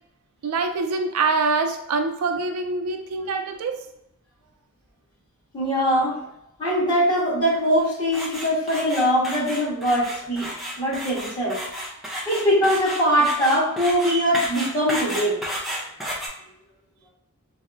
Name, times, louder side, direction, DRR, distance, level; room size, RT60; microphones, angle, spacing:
voice 1, 0.4-3.8, right 3 dB, 85° right, 6 dB, 0.4 m, -25 dB
voice 2, 5.5-6.1 6.6-10.5 10.8-11.6 12.3-15.4, equal, 25° left, -7 dB, 1.2 m, -22 dB
sound 1, 8.1-16.3, equal, ahead, 0.5 m, -32 dB
4.0 x 2.0 x 2.4 m, 0.77 s
head